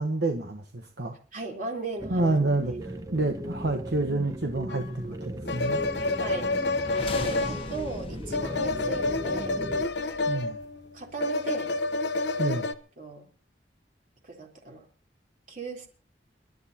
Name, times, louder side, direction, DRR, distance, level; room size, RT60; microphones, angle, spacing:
voice 1, 0.0-1.2 2.1-5.8 10.3-10.6 12.4-12.7, right 2 dB, 70° right, 4 dB, 1.2 m, -28 dB
voice 2, 1.3-2.3 6.0-6.5 7.1-9.6 10.0-10.4 10.9-11.7 13.0-13.3 14.2-14.9 15.5-15.9, right 2 dB, 50° right, 1 dB, 3.9 m, -37 dB
sound 1, 2.0-9.9, right 1 dB, 20° right, 1.0 m, -37 dB
sound 2, 4.7-4.8 5.4-12.7, left 3 dB, 75° left, 1.0 m, -29 dB
sound 3, 6.8-10.8, left 2 dB, 30° left, 1.2 m, -40 dB
28.0 x 12.0 x 2.9 m, 0.38 s
head